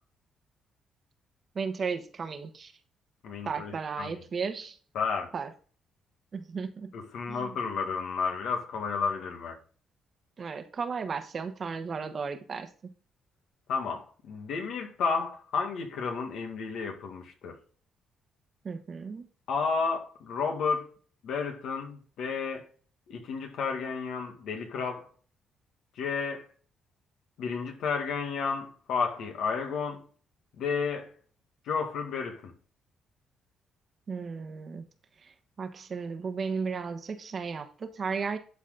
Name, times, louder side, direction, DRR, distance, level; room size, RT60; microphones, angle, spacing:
voice 1, 1.5-2.7 3.4-4.8 5.3-5.5 6.3-6.9 7.3-7.6 10.4-12.9 18.6-19.2 34.1-34.8 35.2-35.3 35.6-38.4, right 5 dB, 45° right, 1.2 m, -35 dB
voice 2, 3.2-4.2 4.9-5.3 6.9-9.6 13.7-17.6 19.5-20.9 21.2-22.7 23.1-25.1 26.0-26.5 27.4-30.0 30.6-31.1 31.7-32.5, left 5 dB, 75° left, 2.0 m, -32 dB
11.5 x 4.2 x 3.9 m
cardioid pair, 90°, 0 cm